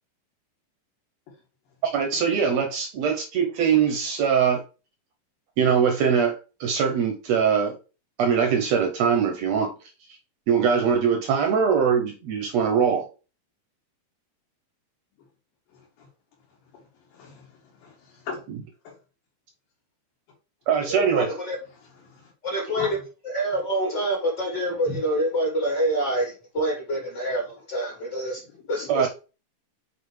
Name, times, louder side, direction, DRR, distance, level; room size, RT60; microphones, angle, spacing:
voice 1, 1.9-4.6 5.6-7.8 8.2-9.7 10.5-13.1 20.7-21.3 28.9-29.1, right 7 dB, 75° right, 1.6 m, -22 dB
voice 2, 17.1-17.5 17.8-18.4 18.8-18.9 22.0-22.3 22.7-22.9 24.9-25.0 28.7-28.9, left 4 dB, 80° left, 3.2 m, -37 dB
voice 3, 20.9-21.6 22.4-23.0 23.2-28.4 28.7-29.1, right 1 dB, 35° left, 2.1 m, -26 dB
7.3 x 4.6 x 3.2 m
omnidirectional pair, 4.0 m